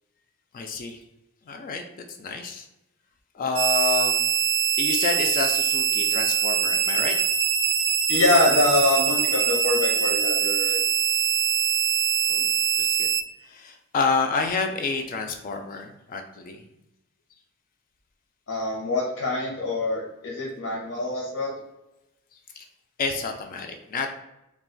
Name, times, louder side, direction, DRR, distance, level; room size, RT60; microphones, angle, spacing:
voice 1, 0.5-1.0 1.5-1.8 2.2-2.6 3.4-4.2 4.8-7.1 12.3-12.5 12.8-13.1 13.5-16.6 22.6-22.7 23.0-24.1, left 4 dB, 40° left, 4 dB, 0.3 m, -28 dB
sound 1, 3.5-13.2, right 8 dB, 85° right, 0.4 m, -23 dB
voice 2, 8.1-10.8 18.5-21.5, left 2 dB, 75° left, -3 dB, 0.7 m, -24 dB
2.4 x 2.2 x 3.8 m, 0.92 s
head